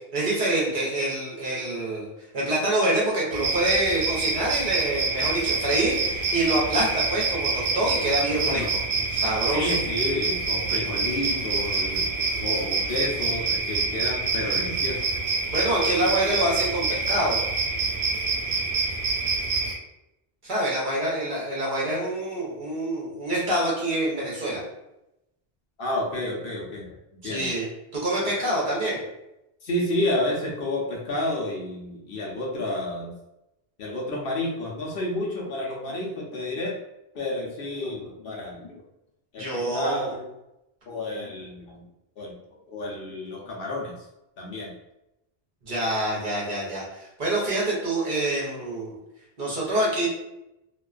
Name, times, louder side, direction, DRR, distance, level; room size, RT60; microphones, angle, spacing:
voice 1, 0.1-2.1 2.3-8.6 9.1-9.7 15.5-17.4 20.4-24.6 27.2-29.0 39.4-40.1 45.6-49.0 49.4-50.1, right 1 dB, 55° right, -5 dB, 0.9 m, -26 dB
sound 1, 3.3-19.7, right 3 dB, 85° right, 0.8 m, -26 dB
voice 2, 8.4-9.0 9.5-12.1 12.4-15.0 25.8-27.0 27.2-27.5 29.6-33.1 33.8-36.7 37.1-38.8 39.3-40.3 40.9-41.9 42.2-42.3 42.7-43.9 44.4-44.7, left 1 dB, 65° left, -3 dB, 0.8 m, -30 dB
2.4 x 2.2 x 2.4 m, 0.90 s
omnidirectional pair, 1.1 m